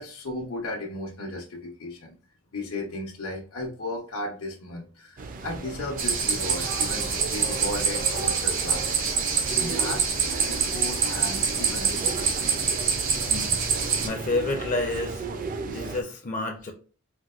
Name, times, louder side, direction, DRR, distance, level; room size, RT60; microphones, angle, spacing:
voice 1, 0.0-2.2 2.5-9.1 9.6-12.3, left 1 dB, 85° left, -2 dB, 0.8 m, -35 dB
sound 1, 5.2-16.0, right 3 dB, 40° right, 0.4 m, -35 dB
sound 2, 6.0-14.1, right 5 dB, 70° right, 0.9 m, -26 dB
voice 2, 13.3-16.7, left 2 dB, 40° left, 3 dB, 0.5 m, -30 dB
4.4 x 2.1 x 2.4 m, 0.37 s
head